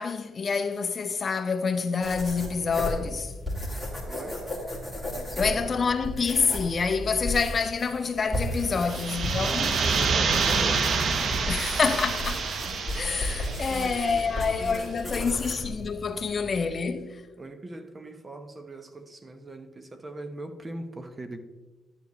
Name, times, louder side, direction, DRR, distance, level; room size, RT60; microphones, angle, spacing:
voice 1, 0.0-3.3 5.3-9.7 11.5-12.5 12.9-17.2, left 5 dB, 40° left, 0.6 m, -27 dB
sound 1, 2.0-16.9, left 1 dB, ahead, 2.5 m, -35 dB
voice 2, 4.1-4.4 5.1-5.7 8.6-8.9 9.4-11.5 11.9-12.0 13.2-15.5 16.1-16.3 17.4-21.4, right 2 dB, 25° right, 0.9 m, -40 dB
sound 2, 8.8-14.4, right 5 dB, 55° right, 0.8 m, -27 dB
11.0 x 7.1 x 3.1 m
cardioid pair, 90°, 0 cm